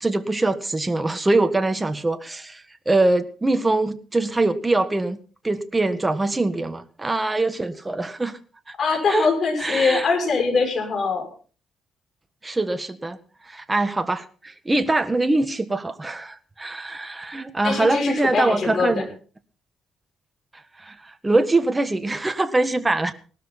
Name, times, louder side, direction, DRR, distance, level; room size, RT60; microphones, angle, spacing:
voice 1, 0.0-5.2 5.4-8.4 8.7-8.8 9.1-9.3 9.6-10.1 12.4-13.2 13.5-19.1 20.8-23.1, right 2 dB, 15° right, 9 dB, 1.6 m, -23 dB
voice 2, 8.8-11.3 17.6-19.0, left 4 dB, 50° left, 3 dB, 6.8 m, -22 dB
18.5 x 12.5 x 4.1 m, 0.39 s
cardioid pair, 90°, 0 cm